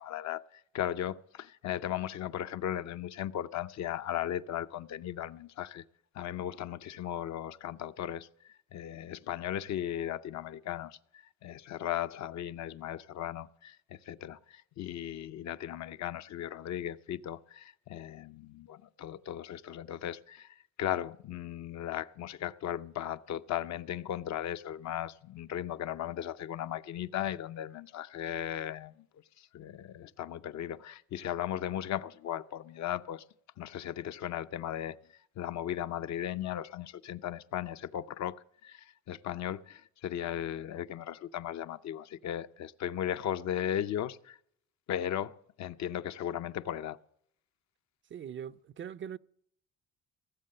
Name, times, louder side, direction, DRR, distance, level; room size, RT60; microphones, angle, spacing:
voice 1, 0.0-5.8 6.1-8.3 8.7-11.0 11.4-29.1 29.4-33.2 33.6-35.0 35.4-44.4 44.9-47.0, left 11 dB, 65° left, 0.6 m, -37 dB
voice 2, 48.1-49.2, right 8 dB, 40° right, 0.4 m, -41 dB
17.0 x 7.5 x 6.6 m
cardioid pair, 90°, 30 cm